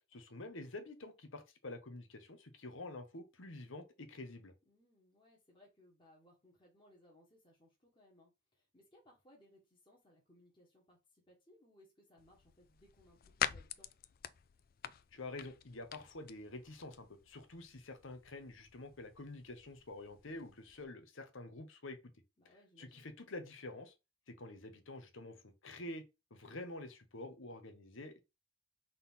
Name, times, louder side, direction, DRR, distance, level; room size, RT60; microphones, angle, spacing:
voice 1, 0.1-4.5 15.1-22.0 22.8-23.9 24.3-26.0 26.3-28.2, left 2 dB, 65° left, 1.0 m, -48 dB
voice 2, 4.6-13.9 22.4-23.1, left 1 dB, 25° left, 1.5 m, -66 dB
sound 1, 12.2-20.8, left 9 dB, 45° left, 0.4 m, -46 dB
4.2 x 4.1 x 5.6 m
head